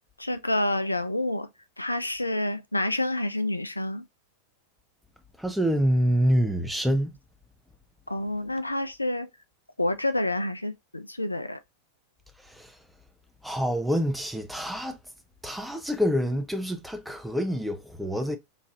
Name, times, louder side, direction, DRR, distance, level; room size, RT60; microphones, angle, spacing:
voice 1, 0.2-1.5 1.8-4.0 8.1-9.3 9.8-11.6, left 1 dB, 85° left, 0.3 m, -28 dB
voice 2, 5.4-7.2 13.4-15.0 15.4-18.4, equal, ahead, 0.6 m, -26 dB
3.8 x 2.6 x 2.2 m
figure-of-eight pair, 90°, 0 cm